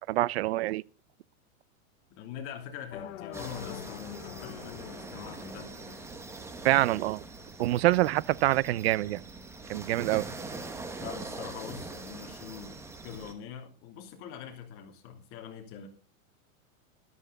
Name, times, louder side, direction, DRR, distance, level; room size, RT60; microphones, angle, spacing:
voice 1, 0.1-0.8 6.6-7.2 7.6-9.2 9.7-10.3, right 16 dB, 50° right, 0.5 m, -25 dB
voice 2, 2.1-6.0 11.0-15.9, left 8 dB, 30° left, 3.0 m, -44 dB
sound 1, 2.9-6.9, left 12 dB, 60° left, 1.2 m, -45 dB
sound 2, 3.3-13.3, right 3 dB, 5° right, 1.0 m, -43 dB
13.5 x 12.5 x 4.0 m
supercardioid pair, 165°, 42 cm